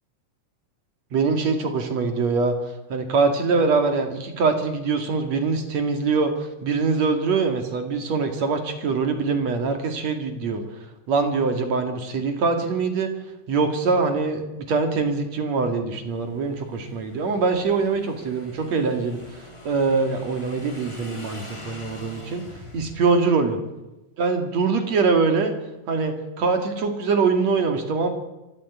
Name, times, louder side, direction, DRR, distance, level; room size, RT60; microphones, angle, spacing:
voice 1, 1.1-2.5 2.9-6.3 6.6-10.6 11.1-13.1 13.5-22.4 22.7-23.6 24.2-25.5 25.9-28.1, right 4 dB, 45° right, 6 dB, 2.6 m, -23 dB
Motorcycle / Engine, 16.1-23.1, left 1 dB, 10° left, 2.2 m, -44 dB
24.5 x 14.5 x 8.5 m, 1.0 s
omnidirectional pair, 5.6 m